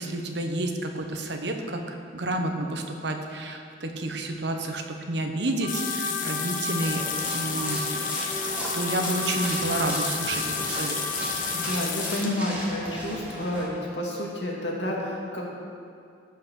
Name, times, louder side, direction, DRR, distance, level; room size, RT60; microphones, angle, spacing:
voice 1, 0.0-7.1 7.3-7.8 8.7-11.0, right 2 dB, 65° right, 4 dB, 1.2 m, -30 dB
Trumpet, 5.6-11.8, left 1 dB, 35° left, 2.2 m, -34 dB
sound 1, 5.7-12.3, left 6 dB, 50° left, 1.1 m, -32 dB
sound 2, 6.8-13.6, equal, 10° right, 2.6 m, -36 dB
voice 2, 11.5-15.5, left 1 dB, 65° left, -2 dB, 2.3 m, -30 dB
15.5 x 5.8 x 6.5 m, 2.4 s
head